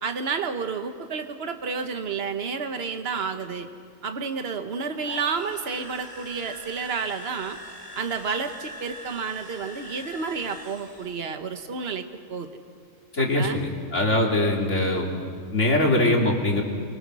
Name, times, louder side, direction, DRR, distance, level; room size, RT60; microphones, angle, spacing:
voice 1, 0.0-3.7 4.0-7.6 8.0-12.5 13.3-13.6, right 5 dB, 50° right, 7 dB, 1.5 m, -30 dB
sound 1, 4.9-11.3, left 1 dB, 35° right, 4.5 m, -43 dB
voice 2, 13.1-15.1 15.5-16.6, left 1 dB, 60° left, -1 dB, 3.3 m, -22 dB
29.0 x 24.0 x 6.3 m, 2.3 s
omnidirectional pair, 1.4 m